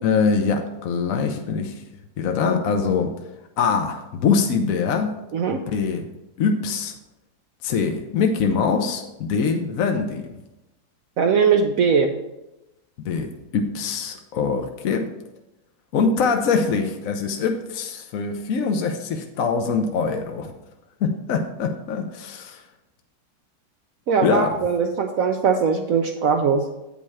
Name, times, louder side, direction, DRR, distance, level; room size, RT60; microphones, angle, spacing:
voice 1, 0.0-1.8 2.2-3.1 3.6-5.1 5.5-6.1 6.4-6.9 7.6-10.3 13.0-15.1 15.9-20.5 21.0-22.6 24.2-24.6, left 5 dB, 60° left, 4 dB, 1.0 m, -23 dB
voice 2, 11.2-12.1 24.1-26.6, right 6 dB, 70° right, 4 dB, 0.8 m, -20 dB
8.6 x 5.4 x 4.8 m, 0.95 s
omnidirectional pair, 2.0 m